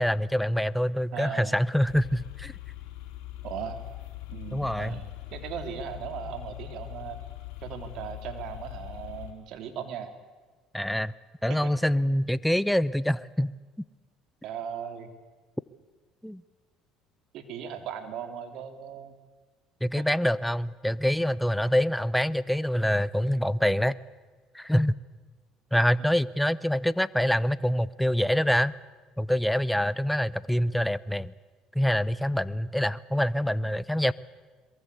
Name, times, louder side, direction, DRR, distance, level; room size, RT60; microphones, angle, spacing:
voice 1, 0.0-2.5 4.5-5.0 10.7-11.1 11.4-13.5 16.2-16.4 19.8-24.0 24.5-24.9 25.7-28.7 29.2-31.3 31.7-34.1, equal, 5° left, 18 dB, 0.8 m, -25 dB
voice 2, 1.1-1.6 3.4-3.8 4.3-7.2 7.6-10.1 11.5-11.7 14.4-15.1 17.3-19.2 19.9-20.0, right 8 dB, 65° right, 8 dB, 3.2 m, -38 dB
sound 1, 1.9-9.3, left 17 dB, 80° left, 3.7 m, -41 dB
22.5 x 22.5 x 8.4 m, 1.4 s
supercardioid pair, 80°, 0 cm